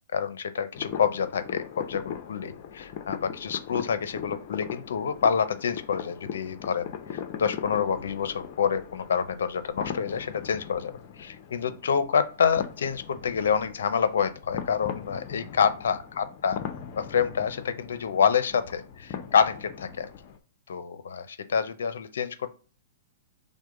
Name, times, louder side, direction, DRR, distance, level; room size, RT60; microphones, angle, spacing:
voice 1, 0.1-10.9 11.2-16.6 17.0-20.1 20.7-22.5, left 7 dB, 75° left, 12 dB, 0.6 m, -27 dB
sound 1, 0.7-20.4, left 8 dB, 45° left, 0.7 m, -40 dB
6.2 x 2.1 x 3.7 m, 0.39 s
hypercardioid pair, 135°, 0 cm